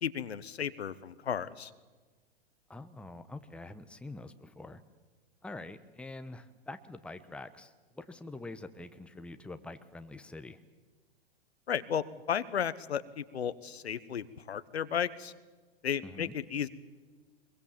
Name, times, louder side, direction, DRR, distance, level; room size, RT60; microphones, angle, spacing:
voice 1, 0.0-1.7 11.7-15.3 15.8-16.7, left 8 dB, 80° left, 15 dB, 1.2 m, -34 dB
voice 2, 2.7-4.8 5.4-10.6 16.0-16.3, left 2 dB, 5° left, 9 dB, 1.0 m, -45 dB
23.0 x 22.0 x 7.3 m, 1.3 s
hypercardioid pair, 110°, 32 cm